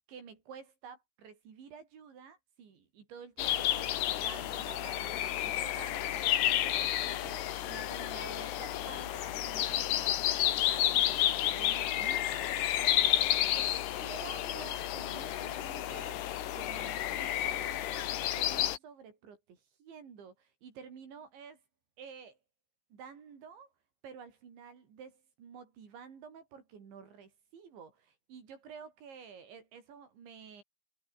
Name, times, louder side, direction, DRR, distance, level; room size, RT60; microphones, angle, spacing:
voice 1, 0.1-10.4 10.7-16.2 16.5-21.6 22.0-22.4 22.9-23.7 24.0-30.6, right 6 dB, 65° right, 6.5 m, -51 dB
sound 1, 3.4-18.8, left 12 dB, 65° left, 3.4 m, -31 dB
omnidirectional pair, 5.6 m